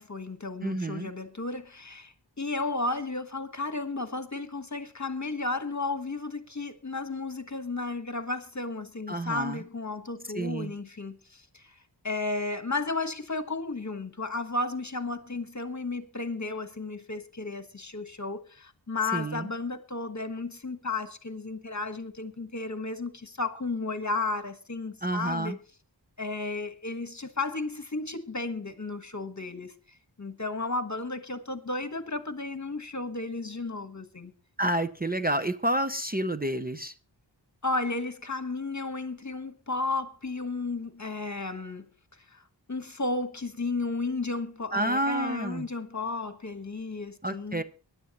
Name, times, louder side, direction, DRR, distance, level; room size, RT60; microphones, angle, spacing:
voice 1, 0.0-11.7 12.0-25.6 26.2-34.3 37.6-41.9 42.3-42.4 42.7-47.6, left 3 dB, 40° left, 1.3 m, -33 dB
voice 2, 0.6-1.1 9.1-9.6 10.3-10.7 19.1-19.5 25.0-25.6 34.6-36.9 44.7-45.7 47.2-47.6, right 1 dB, 20° right, 0.7 m, -29 dB
23.0 x 10.5 x 3.0 m
wide cardioid pair, 40°, 44 cm